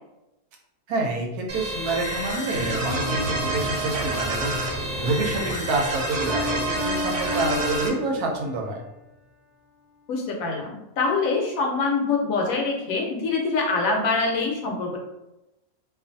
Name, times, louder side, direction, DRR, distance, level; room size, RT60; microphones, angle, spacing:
voice 1, 0.9-8.8, right 3 dB, 85° right, 1 dB, 1.1 m, -27 dB
sound 1, 1.5-7.9, right 2 dB, 65° right, 0.5 m, -29 dB
sound 2, 2.5-8.4, equal, 90° left, 0.5 m, -35 dB
Piano, 6.2-8.7, left 3 dB, 45° right, 0.9 m, -32 dB
voice 2, 10.1-15.0, left 3 dB, 70° left, 0 dB, 0.9 m, -24 dB
2.4 x 2.4 x 2.6 m, 0.94 s
omnidirectional pair, 1.6 m